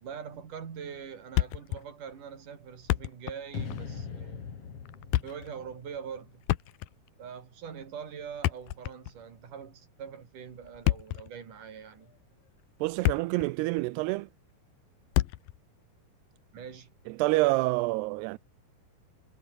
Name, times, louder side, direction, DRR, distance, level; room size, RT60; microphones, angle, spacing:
voice 1, 0.0-4.7 5.2-6.4 7.2-12.1 16.5-16.9, right 7 dB, 55° right, 4.8 m, -43 dB
Thump thud, 1.4-1.9 2.1-2.2 2.7-3.4 3.7-3.9 4.9-5.5 6.4-7.1 8.3-9.2 10.6-11.3 12.0-12.2 12.7-13.5 13.8-13.9 15.1-15.6, left 16 dB, 70° left, 2.3 m, -29 dB
sound 1, 3.5-6.7, left 6 dB, 40° left, 3.5 m, -41 dB
voice 2, 12.8-14.3 17.1-18.4, right 22 dB, 85° right, 2.7 m, -27 dB
omnidirectional pair, 4.7 m